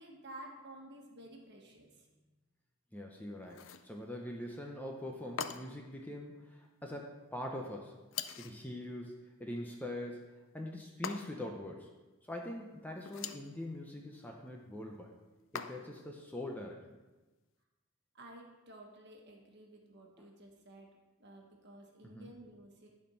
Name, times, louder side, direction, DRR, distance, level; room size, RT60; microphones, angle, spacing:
voice 1, 0.0-2.1 18.1-20.9 21.2-22.9, right 1 dB, 50° right, 1 dB, 1.4 m, -53 dB
voice 2, 2.9-8.0 8.4-11.9 12.3-15.1 15.5-16.9 20.2-20.3 22.0-22.3, left 1 dB, 10° left, 0 dB, 0.6 m, -43 dB
sound 1, 3.5-3.9 5.4-5.9 8.1-8.6 11.0-11.6 13.0-13.5 15.5-16.1, left 7 dB, 65° left, 0.4 m, -42 dB
11.5 x 4.4 x 5.5 m, 1.2 s
head